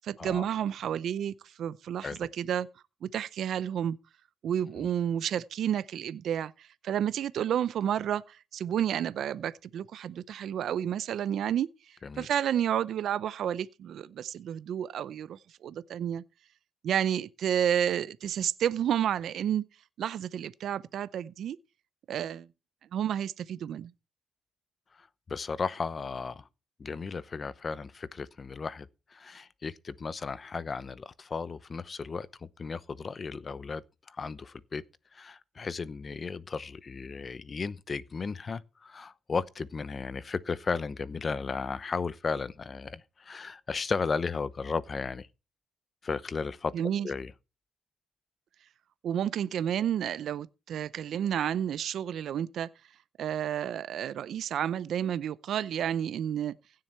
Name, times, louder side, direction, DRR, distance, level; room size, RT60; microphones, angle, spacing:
voice 1, 0.0-2.7 3.0-4.0 4.4-16.2 16.8-19.6 20.0-21.6 22.1-22.5 22.9-23.9 46.7-47.1 49.0-52.7 53.2-56.5, right 9 dB, 70° right, 0.6 m, -31 dB
voice 2, 24.9-26.5 26.8-33.8 34.1-34.8 35.1-45.3 46.0-46.7 47.0-47.3, left 5 dB, 35° left, 0.8 m, -35 dB
16.0 x 7.7 x 4.4 m
cardioid pair, 90°, 0 cm